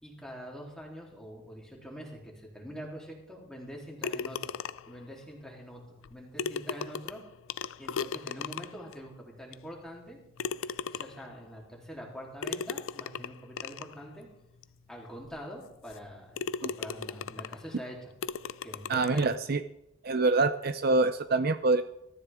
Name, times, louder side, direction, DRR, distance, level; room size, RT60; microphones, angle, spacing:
voice 1, 0.0-4.4 4.9-5.8 6.1-7.2 7.8-10.2 10.8-14.3 14.9-18.1 18.6-19.3, equal, 5° left, -3 dB, 3.4 m, -44 dB
sound 1, 4.0-5.0 6.0-6.1 6.4-8.9 9.5-9.6 10.4-11.3 12.4-13.9 14.6-14.7 15.2-15.3 15.9-16.1 16.4-17.7 18.2-19.4, left 6 dB, 75° left, 0.5 m, -36 dB
voice 2, 18.9-19.6 20.0-21.8, right 3 dB, 45° right, 10 dB, 0.5 m, -25 dB
21.5 x 13.5 x 3.6 m, 0.86 s
head